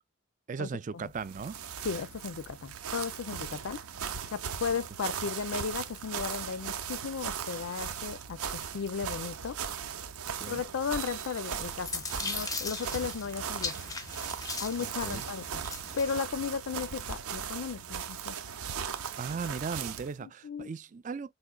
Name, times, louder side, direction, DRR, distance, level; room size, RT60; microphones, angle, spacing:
voice 1, 0.5-1.6 10.4-10.6 14.8-15.2 19.2-21.3, right 5 dB, 35° right, 0.3 m, -37 dB
sound 1, 1.0-20.1, right 7 dB, 85° right, 0.7 m, -38 dB
voice 2, 1.8-3.8 4.3-9.6 10.5-13.7 14.6-15.6 16.0-18.4 20.2-20.7, left 6 dB, 70° left, 0.4 m, -35 dB
sound 2, 10.9-13.2, right 10 dB, 55° right, 0.8 m, -53 dB
sound 3, 11.4-16.2, left 4 dB, 15° left, 0.5 m, -39 dB
4.9 x 3.0 x 2.2 m
head